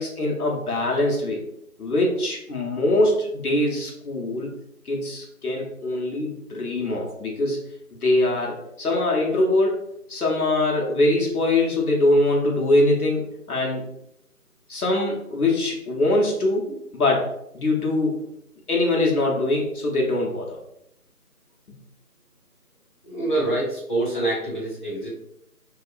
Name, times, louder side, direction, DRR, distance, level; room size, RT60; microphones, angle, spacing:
voice 1, 0.0-1.4 1.8-4.5 4.8-7.6 8.0-13.8 14.7-16.7 16.9-17.3 17.5-18.2 18.7-20.6, left 2 dB, 70° left, -1 dB, 0.8 m, -23 dB
voice 2, 23.0-25.1, right 2 dB, 35° left, -8 dB, 0.8 m, -26 dB
2.8 x 2.3 x 2.3 m, 0.77 s
figure-of-eight pair, 170°, 46 cm